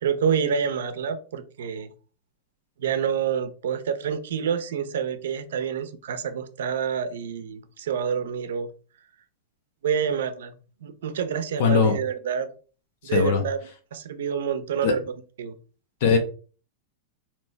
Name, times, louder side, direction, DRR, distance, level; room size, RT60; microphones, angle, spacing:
voice 1, 0.0-1.9 2.8-8.7 9.8-10.5 10.8-12.5 13.0-13.6 13.9-15.0 15.4-15.6, right 7 dB, 85° right, 10 dB, 0.7 m, -27 dB
voice 2, 11.6-12.0 13.0-13.4 14.8-14.9 16.0-16.2, left 5 dB, 45° left, 5 dB, 1.0 m, -20 dB
4.1 x 3.0 x 3.3 m, 0.38 s
supercardioid pair, 180°, 0 cm